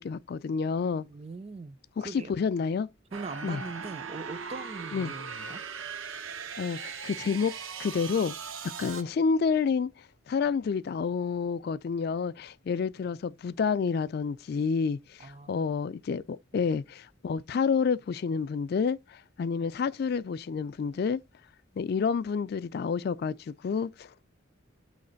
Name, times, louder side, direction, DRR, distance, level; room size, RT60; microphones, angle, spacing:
voice 1, 0.0-1.0 2.0-2.1 2.4-2.9 3.4-3.6 4.9-5.1 6.6-7.5 7.8-8.4 8.8-9.9 10.3-21.2 21.8-24.1, left 5 dB, 50° left, 0.3 m, -29 dB
voice 2, 1.0-2.3 3.1-5.6 15.2-15.7 16.5-16.6, right 3 dB, 30° right, 0.3 m, -41 dB
sound 1, 3.1-9.0, right 6 dB, 80° right, 0.7 m, -39 dB
8.5 x 3.2 x 3.8 m
head